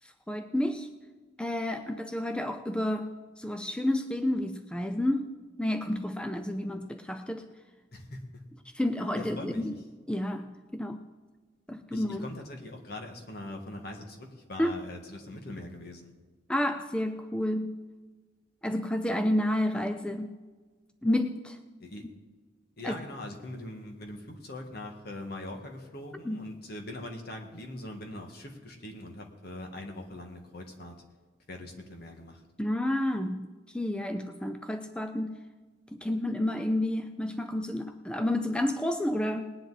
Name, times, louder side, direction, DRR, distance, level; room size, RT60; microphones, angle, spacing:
voice 1, 0.0-0.9 1.4-5.3 5.6-7.5 8.7-9.8 10.1-11.0 11.7-12.2 14.6-14.8 16.5-17.8 18.6-20.4 21.0-21.6 22.8-23.0 26.2-26.4 32.6-35.4 35.9-39.4, left 1 dB, 5° left, 8 dB, 0.4 m, -30 dB
voice 2, 7.9-8.4 9.2-9.6 11.9-16.1 21.8-22.0 22.8-31.0 31.5-32.4, left 1 dB, 55° left, 3 dB, 1.7 m, -42 dB
19.5 x 9.9 x 4.1 m, 1.4 s
head